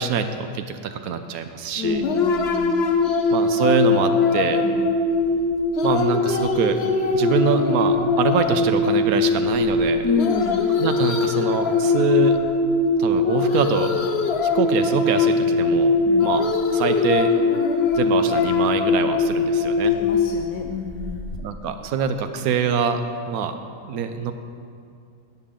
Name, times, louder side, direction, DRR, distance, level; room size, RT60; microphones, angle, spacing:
voice 1, 0.0-2.0 3.3-4.6 5.8-6.8 7.1-10.1 10.8-12.4 13.0-13.9 14.5-16.4 16.7-17.3 17.9-20.0 21.4-23.0 23.3-23.5 23.8-24.3, right 6 dB, 80° right, 8 dB, 1.1 m, -24 dB
voice 2, 1.8-2.9 4.6-4.9 10.0-10.8 16.1-16.3 20.0-21.3, left 6 dB, 80° left, 3 dB, 1.1 m, -29 dB
sound 1, 1.8-21.4, left 4 dB, 55° left, 0.9 m, -21 dB
11.5 x 8.7 x 3.8 m, 2.3 s
omnidirectional pair, 1.5 m